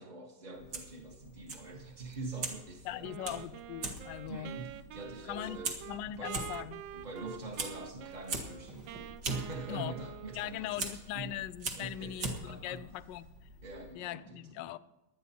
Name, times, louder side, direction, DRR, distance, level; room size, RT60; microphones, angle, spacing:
voice 1, 0.0-3.4 4.2-5.7 6.1-6.4 6.9-8.9 9.2-11.3 11.7-12.8 13.6-14.5, right 3 dB, 25° right, 1.0 m, -44 dB
Fire, 0.5-13.9, right 3 dB, 55° right, 2.4 m, -43 dB
voice 2, 2.8-4.5 5.3-5.6 5.9-6.8 9.7-9.9 10.3-13.3 13.9-14.8, left 13 dB, 75° left, 1.1 m, -40 dB
Wind instrument woodwind instrument, 3.0-10.7, right 10 dB, 70° right, 1.2 m, -47 dB
17.5 x 11.5 x 4.3 m
omnidirectional pair, 2.3 m